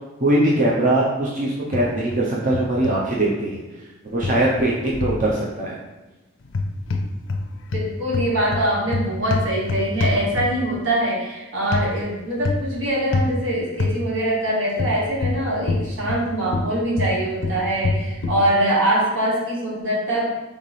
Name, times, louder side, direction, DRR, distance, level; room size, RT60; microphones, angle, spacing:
voice 1, 0.2-3.6 4.0-5.8, right 1 dB, 40° right, -5 dB, 0.7 m, -21 dB
sound 1, 1.7-2.2 2.5-3.0 4.2-5.2 6.5-7.4 7.7-10.7 11.7-11.9 12.4-12.7 13.1-13.3 13.8-14.0 14.8-16.2 16.5-18.4, left 3 dB, 75° left, 0.5 m, -25 dB
voice 2, 7.7-20.3, right 1 dB, 75° right, -4 dB, 1.3 m, -23 dB
3.7 x 3.3 x 4.1 m, 1.1 s
head